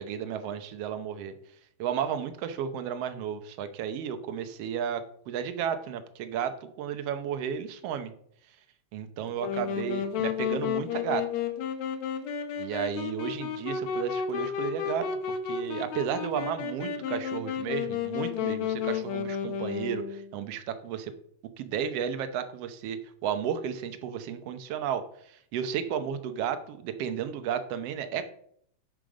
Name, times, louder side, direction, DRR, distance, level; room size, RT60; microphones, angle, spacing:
voice 1, 0.0-1.3 1.8-8.1 8.9-11.3 12.6-21.1 21.6-28.3, right 8 dB, 70° right, 9 dB, 1.6 m, -33 dB
Wind instrument woodwind instrument, 9.4-20.3, left 7 dB, 70° left, 2.1 m, -32 dB
11.5 x 5.1 x 5.1 m, 0.65 s
omnidirectional pair, 3.6 m